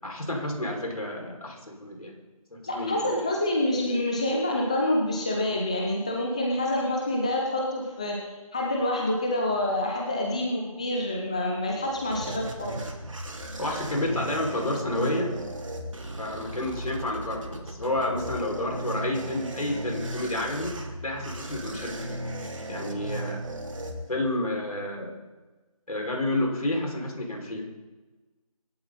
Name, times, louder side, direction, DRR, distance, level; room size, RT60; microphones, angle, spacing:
voice 1, 0.0-2.1 2.7-3.1 13.6-15.4 16.2-22.2 22.7-23.4 24.1-25.1 25.9-27.6, left 1 dB, 75° left, 0 dB, 5.9 m, -30 dB
voice 2, 2.7-12.8, left 1 dB, 10° left, 0 dB, 0.7 m, -27 dB
sound 1, 11.6-24.5, right 1 dB, 55° right, 2.9 m, -36 dB
25.0 x 11.5 x 4.2 m, 1.2 s
figure-of-eight pair, 170°, 19 cm